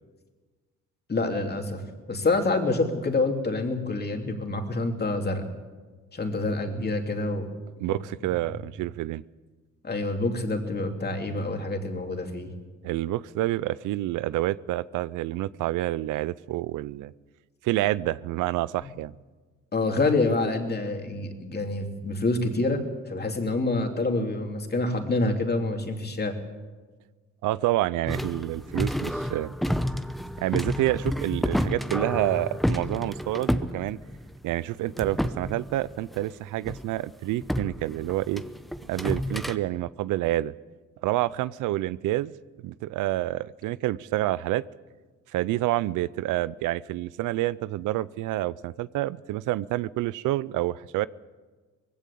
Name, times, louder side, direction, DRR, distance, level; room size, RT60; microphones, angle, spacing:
voice 1, 1.1-1.8 2.1-5.4 6.1-7.5 7.9-8.0 9.8-12.5 18.8-18.9 19.7-22.8 23.1-26.4, left 2 dB, 35° left, 4 dB, 2.9 m, -27 dB
voice 2, 7.8-9.2 12.8-17.1 17.6-19.1 27.4-29.5 30.4-34.0 34.4-38.4 38.8-40.5 41.0-42.3 42.6-44.6 45.3-51.1, right 16 dB, 85° right, 20 dB, 0.5 m, -28 dB
sound 1, 28.1-34.5 34.9-36.2 36.6-36.8 37.4-39.6, equal, ahead, 0.8 m, -30 dB
20.0 x 16.0 x 8.4 m, 1.4 s
cardioid pair, 90°, 30 cm